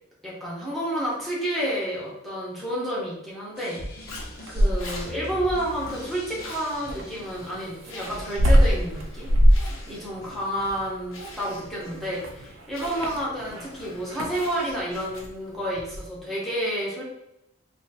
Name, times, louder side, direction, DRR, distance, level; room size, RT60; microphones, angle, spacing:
voice 1, 0.2-9.3 9.6-17.0, equal, ahead, -7 dB, 1.0 m, -30 dB
sound 1, 3.5-8.5, equal, 50° left, 0.9 m, -42 dB
Zipper (clothing), 4.1-15.5, left 1 dB, 85° left, 0.9 m, -43 dB
sound 2, 4.2-5.1 6.9-13.7 14.1-14.5 15.8-16.1, equal, 75° right, 0.6 m, -23 dB
2.8 x 2.5 x 4.1 m, 0.82 s
head